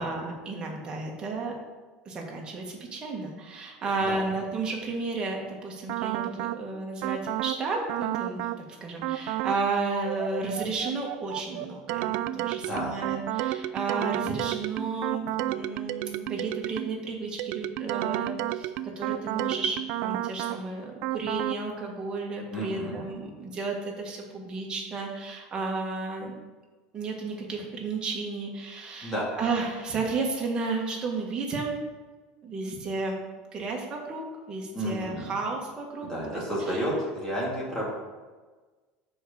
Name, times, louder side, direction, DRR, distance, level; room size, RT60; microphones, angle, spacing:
voice 1, 0.0-1.5 2.0-26.4 26.9-31.7 32.4-33.2 33.5-36.8, right 3 dB, 25° right, -1 dB, 1.6 m, -33 dB
sound 1, 5.9-6.6 7.0-7.6 7.9-8.6 9.0-9.6 9.9-17.0 17.4-20.6 21.0-21.6, right 14 dB, 65° right, 0.3 m, -31 dB
voice 2, 22.5-23.0 29.0-29.3 34.7-35.3 36.0-37.9, equal, 20° left, -6 dB, 2.3 m, -31 dB
6.2 x 4.8 x 6.6 m, 1.3 s
supercardioid pair, 140°, 3 cm